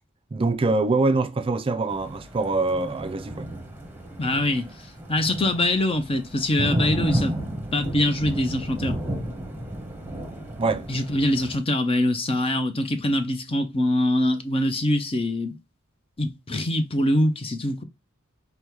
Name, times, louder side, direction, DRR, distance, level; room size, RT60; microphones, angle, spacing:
voice 1, 0.3-3.5 10.6-10.9, right 3 dB, 25° right, 0.4 m, -24 dB
Thunder, 1.9-11.6, right 1 dB, 10° right, 1.0 m, -32 dB
voice 2, 4.2-4.7 5.1-7.4 7.7-9.0 10.9-15.5 16.2-17.8, left 1 dB, 25° left, 0.6 m, -23 dB
5.2 x 2.2 x 4.5 m
head